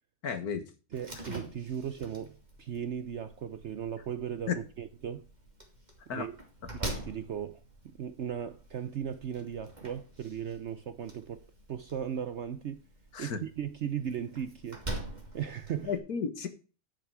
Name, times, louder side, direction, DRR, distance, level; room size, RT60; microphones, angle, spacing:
voice 1, 0.2-0.7 4.5-4.6 6.1-6.3 13.1-13.4 15.8-16.5, left 6 dB, 65° left, 1.9 m, -33 dB
Slam, 0.9-16.0, right 1 dB, 25° right, 2.7 m, -45 dB
voice 2, 0.9-5.3 6.1-6.4 6.7-11.4 11.7-12.8 13.2-14.8 15.3-16.0, right 8 dB, 60° right, 0.8 m, -37 dB
11.5 x 7.0 x 4.8 m
omnidirectional pair, 1.7 m